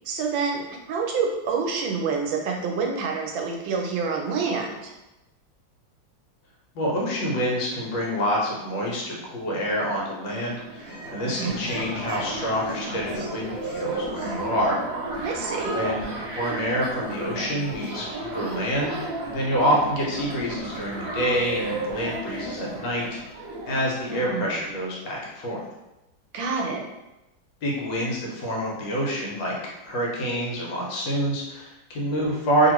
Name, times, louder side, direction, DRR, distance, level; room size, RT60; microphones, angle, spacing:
voice 1, 0.1-4.9 11.2-11.6 15.2-15.7 23.7-24.6 26.3-26.8, right 5 dB, 80° right, 1 dB, 1.3 m, -28 dB
voice 2, 6.7-14.8 15.7-19.0 19.3-23.1 23.3-25.6 27.6-29.6 29.8-32.7, equal, 75° left, -3 dB, 1.4 m, -27 dB
sound 1, 10.3-24.9, right 2 dB, 55° right, 1.1 m, -33 dB
2.9 x 2.7 x 2.9 m, 0.95 s
omnidirectional pair, 2.1 m